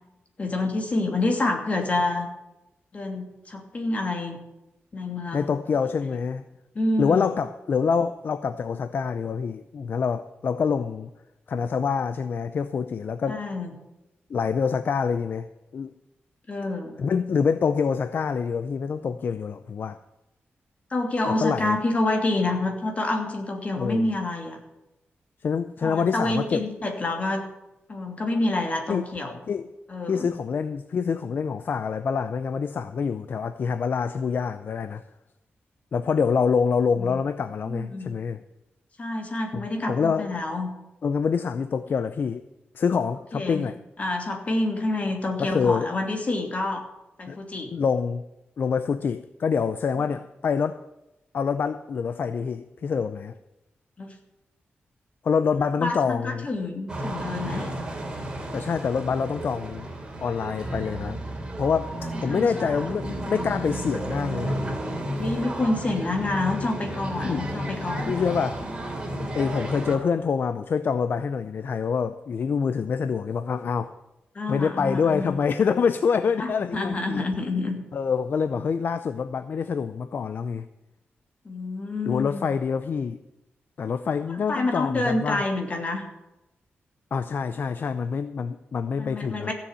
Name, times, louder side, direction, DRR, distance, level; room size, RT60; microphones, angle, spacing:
voice 1, 0.4-2.3 2.9-4.4 4.9-5.5 6.7-7.3 13.3-13.7 16.5-17.0 20.9-24.6 25.8-27.5 27.9-29.4 29.9-30.3 37.0-37.3 37.7-38.1 39.0-40.7 43.3-43.6 44.0-46.9 47.2-47.7 54.0-54.1 55.8-57.7 62.3-62.7 65.1-68.3 74.3-75.4 76.4-77.8 81.4-82.5 84.5-86.1 89.0-89.5, left 2 dB, 35° left, 3 dB, 2.8 m, -28 dB
voice 2, 5.3-6.5 7.0-11.1 11.5-13.4 14.3-15.5 15.7-15.9 17.0-20.0 21.2-21.8 23.8-24.1 25.4-26.6 28.9-29.1 29.5-29.7 30.1-35.0 35.9-38.4 39.5-39.6 39.9-40.3 41.0-42.5 42.7-43.7 45.4-45.9 47.3-47.4 47.7-48.2 48.6-50.8 51.3-53.4 55.2-56.5 58.5-59.9 60.2-61.2 61.6-64.8 67.2-67.4 68.1-68.7 69.3-74.0 74.5-77.3 77.9-80.7 82.1-83.2 83.8-85.4 87.1-89.5, left 6 dB, 55° left, 12 dB, 0.6 m, -26 dB
sound 1, 56.9-70.0, right 1 dB, 20° right, 3.1 m, -32 dB
15.5 x 7.2 x 8.9 m, 0.94 s
wide cardioid pair, 130°, 4 cm